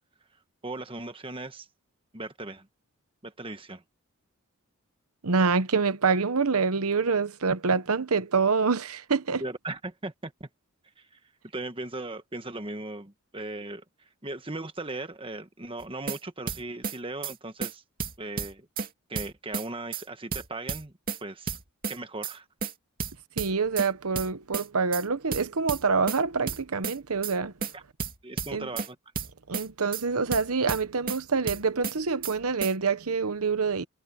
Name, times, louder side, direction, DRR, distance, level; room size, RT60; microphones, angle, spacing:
voice 1, 0.6-1.7 2.1-2.7 3.2-3.8 9.4-10.5 11.0-11.2 11.5-13.8 14.2-17.8 18.2-18.7 19.1-20.9 21.2-21.6 21.9-22.5 27.7-27.8 28.2-29.0, right 2 dB, 25° right, 1.5 m, -38 dB
voice 2, 5.2-9.4 23.4-27.5 28.5-28.7 29.5-33.8, right 4 dB, 80° right, 1.0 m, -26 dB
sound 1, 15.8-16.2 16.5-17.0 17.2-17.3 17.6-17.7 18.0-18.9 19.1-19.7 19.9-20.0 20.3-21.2 21.5-22.0 22.2-22.3 22.6-22.7 23.0-23.9 24.2-24.7 24.9-25.0 25.3-26.2 26.5-27.0 27.2-27.3 27.6-27.7 28.0-28.9 29.2-29.7 29.9-30.0 30.3-31.2 31.5-32.0 32.2-32.3 32.6-32.7, right 5 dB, 40° right, 2.6 m, -32 dB
head